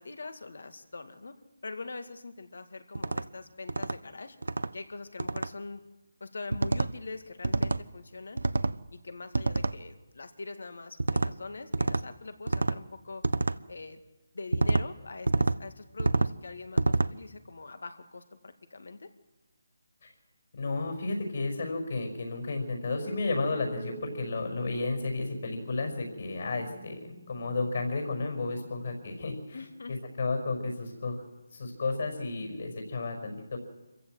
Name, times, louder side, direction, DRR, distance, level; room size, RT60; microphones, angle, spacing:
voice 1, 0.0-1.4 1.6-4.4 4.7-5.8 6.2-8.4 8.9-13.2 13.7-14.0 14.3-19.1 29.5-30.0, left 3 dB, 70° left, 9 dB, 2.0 m, -43 dB
sound 1, 3.0-3.2 3.7-4.0 4.4-4.7 5.2-5.5 6.5-6.9 7.4-7.8 8.4-8.8 9.3-9.8 11.0-11.3 11.7-12.0 12.5-12.8 13.2-13.6 14.5-14.9 15.3-15.6 16.0-16.3 16.8-17.1, right 3 dB, 85° right, 0.8 m, -27 dB
voice 2, 20.6-27.0 27.3-29.6 30.2-31.2 31.5-33.6, left 3 dB, 55° left, 3 dB, 5.5 m, -32 dB
sound 2, 23.0-29.9, right 7 dB, 20° right, 1.8 m, -50 dB
25.5 x 15.5 x 7.9 m, 1.1 s
figure-of-eight pair, 165°, 0 cm